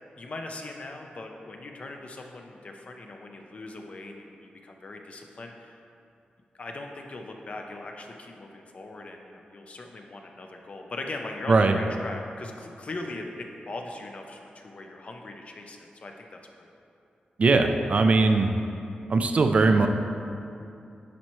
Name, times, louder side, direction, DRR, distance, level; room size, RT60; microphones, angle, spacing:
voice 1, 0.2-5.8 6.5-16.7, left 2 dB, 45° left, 3 dB, 0.6 m, -40 dB
voice 2, 17.4-18.5 19.1-19.9, right 3 dB, 45° right, 6 dB, 0.4 m, -20 dB
10.0 x 4.3 x 3.1 m, 2.6 s
wide cardioid pair, 125°, 3 cm